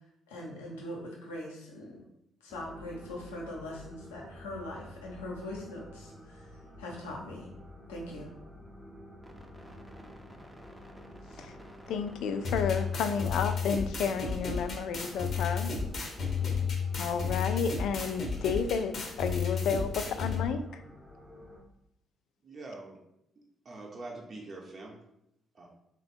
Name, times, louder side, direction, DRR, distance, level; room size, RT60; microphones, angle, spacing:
voice 1, 0.3-2.0 2.4-7.5 7.9-8.3, left 1 dB, 90° left, -2 dB, 0.7 m, -41 dB
sound 1, 2.5-21.6, equal, ahead, 0.7 m, -50 dB
voice 2, 11.9-15.7 17.0-20.6, left 6 dB, 70° left, 9 dB, 0.3 m, -31 dB
sound 2, 12.4-20.4, left 5 dB, 55° left, 0.8 m, -32 dB
voice 3, 22.4-23.0 23.6-24.9 25.5-25.7, right 2 dB, 45° right, -1 dB, 0.8 m, -44 dB
3.4 x 2.3 x 4.1 m, 0.80 s
hypercardioid pair, 45°, 0 cm